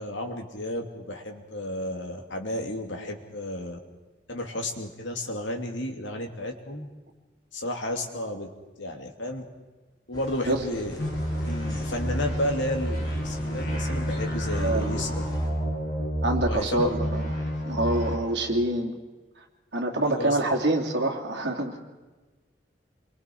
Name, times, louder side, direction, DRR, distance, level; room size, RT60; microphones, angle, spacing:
voice 1, 0.0-3.8 4.3-6.9 7.5-8.5 8.8-9.4 10.1-10.9 11.4-15.2 15.6-15.7 16.4-17.0 20.1-20.4, left 1 dB, 90° left, 3 dB, 2.7 m, -32 dB
sound 1, 10.1-15.5, equal, 25° left, 5.3 m, -40 dB
sound 2, 11.0-16.5 16.8-18.2, equal, 70° left, 7.4 m, -29 dB
voice 2, 14.6-15.2 16.2-17.3 17.7-19.0 19.7-21.8, right 1 dB, 70° right, 0 dB, 3.0 m, -26 dB
28.0 x 23.5 x 4.7 m, 1.2 s
head